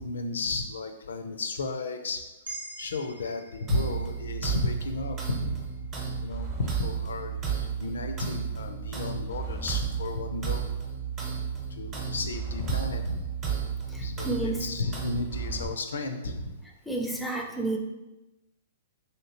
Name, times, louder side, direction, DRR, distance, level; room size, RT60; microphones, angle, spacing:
voice 1, 0.0-2.2 2.8-5.6 6.2-10.7 11.7-13.3 13.9-16.6, left 3 dB, 85° left, 6 dB, 0.4 m, -33 dB
sound 1, 2.4-6.7, right 2 dB, 75° right, 0.9 m, -46 dB
sound 2, 3.7-15.6, right 7 dB, 25° right, 0.8 m, -33 dB
voice 2, 13.9-14.7 16.9-17.8, right 2 dB, ahead, 1 dB, 0.4 m, -31 dB
3.2 x 2.8 x 2.8 m, 1.0 s
hypercardioid pair, 140°, 0 cm